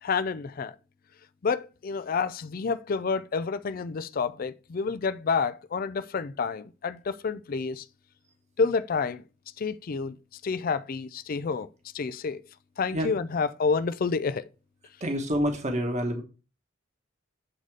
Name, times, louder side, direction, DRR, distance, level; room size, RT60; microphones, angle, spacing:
voice 1, 0.0-0.8 1.4-7.9 8.6-9.2 9.6-11.7 11.9-12.4 12.8-14.4, left 5 dB, 45° left, 0.4 m, -29 dB
voice 2, 15.0-16.2, equal, 35° right, 1.3 m, -27 dB
7.8 x 4.1 x 4.7 m
head